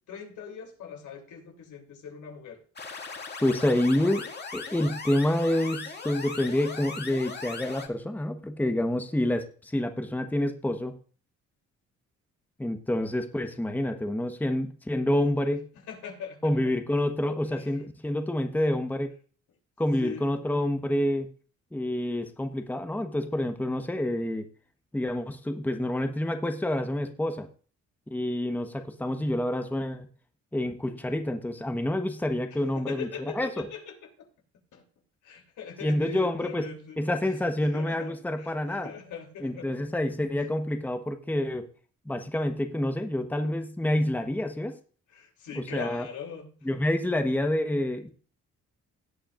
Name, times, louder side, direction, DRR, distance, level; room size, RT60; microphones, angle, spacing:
voice 1, 0.1-2.6 15.9-16.6 17.5-17.7 20.0-20.2 32.5-34.3 34.7-34.8 35.2-39.7 40.4-40.5 45.1-46.5, left 7 dB, 75° left, 3 dB, 3.1 m, -41 dB
sound 1, 2.8-7.9, left 4 dB, 35° left, 2.2 m, -39 dB
voice 2, 3.4-11.0 12.6-15.6 16.4-19.1 19.8-21.3 21.7-24.4 24.9-27.5 28.1-30.1 30.5-33.1 33.3-33.5 35.8-36.7 37.0-38.9 39.4-41.7 42.1-44.7 45.5-46.1 46.6-48.1, left 1 dB, 5° left, 6 dB, 1.1 m, -28 dB
17.0 x 8.7 x 2.5 m, 0.40 s
cardioid pair, 90°, 30 cm